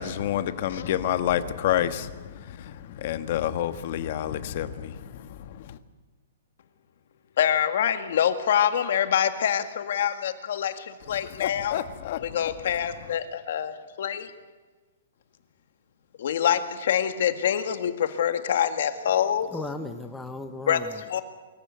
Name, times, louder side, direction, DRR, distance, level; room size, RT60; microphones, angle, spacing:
voice 1, 0.0-5.8 11.1-12.7 13.0-13.2, left 11 dB, 45° left, 12 dB, 1.3 m, -29 dB
voice 2, 7.4-11.8 12.2-14.3 16.2-19.5 20.7-20.8 21.1-21.2, left 9 dB, 60° left, 9 dB, 1.9 m, -25 dB
voice 3, 19.5-21.2, left 2 dB, 5° left, 7 dB, 0.8 m, -37 dB
23.5 x 14.5 x 9.5 m, 1.3 s
hypercardioid pair, 165°, 0 cm